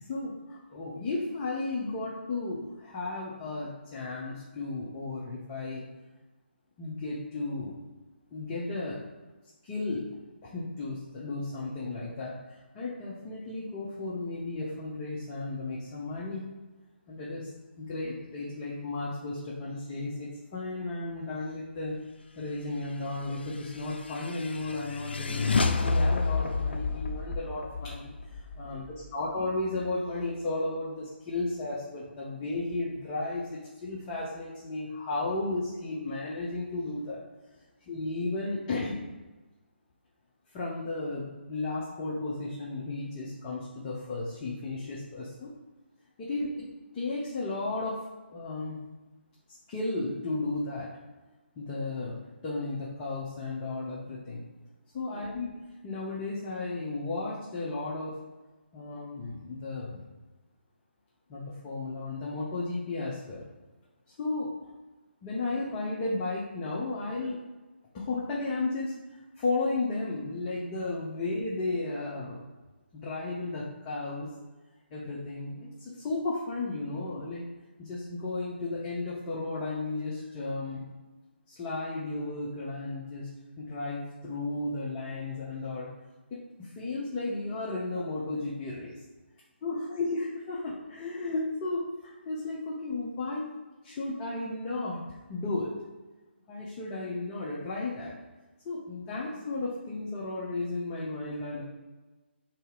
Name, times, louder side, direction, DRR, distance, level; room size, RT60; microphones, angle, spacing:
voice 1, 0.0-5.9 6.8-7.8 8.3-9.0 9.6-10.1 10.4-16.5 17.1-17.5 17.8-22.0 22.4-37.2 37.9-39.0 40.5-45.5 46.2-46.7 46.9-48.0 48.3-48.8 49.7-50.9 51.6-54.4 54.9-55.5 55.8-58.2 58.7-60.0 61.3-63.4 64.1-64.7 65.2-67.4 67.9-68.9 69.4-72.4 72.9-74.3 74.9-77.4 77.8-80.8 81.5-83.3 83.6-85.9 86.3-89.0 89.6-93.5 93.8-95.0 95.3-95.8 96.5-98.1 98.6-101.6, left 2 dB, 20° left, -6 dB, 0.6 m, -34 dB
sound 1, 23.4-29.0, left 3 dB, 60° left, 0.4 m, -30 dB
3.9 x 2.8 x 3.7 m, 1.2 s
figure-of-eight pair, 145°, 6 cm